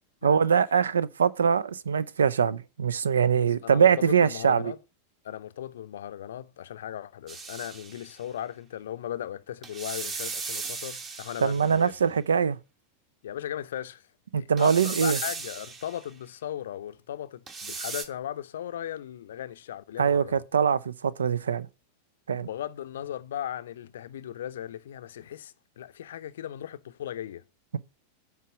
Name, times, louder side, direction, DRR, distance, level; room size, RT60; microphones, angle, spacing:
voice 1, 0.2-4.7 11.4-12.6 14.3-15.2 20.0-21.7 22.3-22.5, right 7 dB, 70° right, 0.5 m, -23 dB
voice 2, 3.3-4.8 5.2-11.9 13.2-14.1 14.4-20.4 22.4-27.4, left 11 dB, 60° left, 0.6 m, -37 dB
sound 1, 7.3-8.2 9.6-11.9 14.6-16.0 17.5-18.0, right 4 dB, 25° right, 1.4 m, -37 dB
8.3 x 4.7 x 7.2 m
figure-of-eight pair, 90°, 0 cm